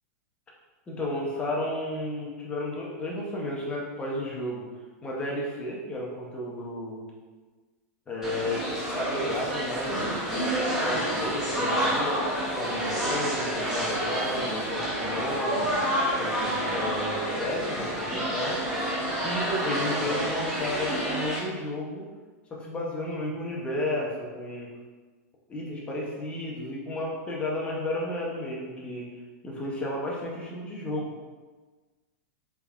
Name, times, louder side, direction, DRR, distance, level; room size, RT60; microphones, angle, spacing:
voice 1, 0.9-4.6 5.0-7.0 8.1-10.5 10.8-12.2 12.5-15.8 16.1-18.6 19.2-22.0 22.5-24.7 25.5-29.1 29.4-31.1, left 1 dB, 15° left, -3 dB, 0.7 m, -33 dB
sound 1, 8.2-21.4, right 1 dB, 5° right, 1.0 m, -29 dB
3.5 x 3.3 x 2.4 m, 1.3 s
supercardioid pair, 150°, 9 cm